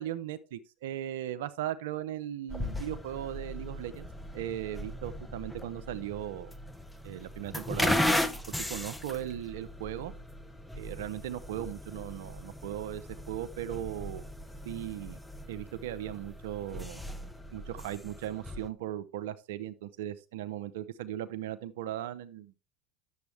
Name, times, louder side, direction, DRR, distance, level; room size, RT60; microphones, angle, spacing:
voice 1, 0.0-4.1 4.3-6.5 7.0-7.9 8.6-10.1 10.8-14.2 14.6-15.2 15.5-17.0 17.5-22.5, right 12 dB, 80° right, 12 dB, 0.5 m, -38 dB
sound 1, 2.5-18.7, left 1 dB, 5° left, 0.8 m, -37 dB
9.4 x 7.1 x 3.3 m, 0.33 s
hypercardioid pair, 85°, 0 cm